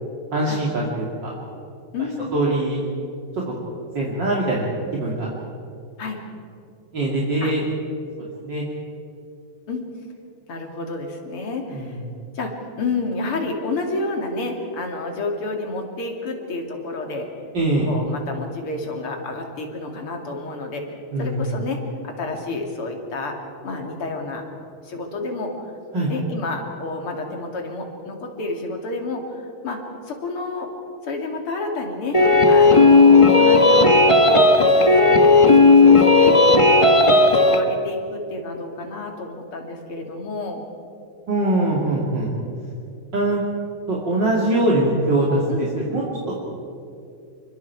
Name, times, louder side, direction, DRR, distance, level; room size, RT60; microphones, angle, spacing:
voice 1, 0.3-1.3 2.3-2.8 3.9-4.7 4.9-5.3 6.9-7.6 8.2-8.6 11.7-12.0 17.5-17.9 21.1-21.4 25.9-26.1 41.3-42.3 43.1-43.4 43.9-46.4, right 1 dB, 55° right, -5 dB, 3.3 m, -22 dB
voice 2, 1.9-2.3 6.0-6.2 7.4-7.5 9.7-9.9 10.5-12.0 12.4-17.3 17.9-23.4 23.6-24.4 24.8-25.7 26.1-29.8 30.1-30.7 31.0-32.2 32.4-36.3 36.8-40.6 45.5-45.7, left 2 dB, 85° left, 2 dB, 3.4 m, -30 dB
sound 1, 32.1-37.6, left 3 dB, 20° left, 1.1 m, -13 dB
28.0 x 23.5 x 4.7 m, 2.5 s
omnidirectional pair, 2.3 m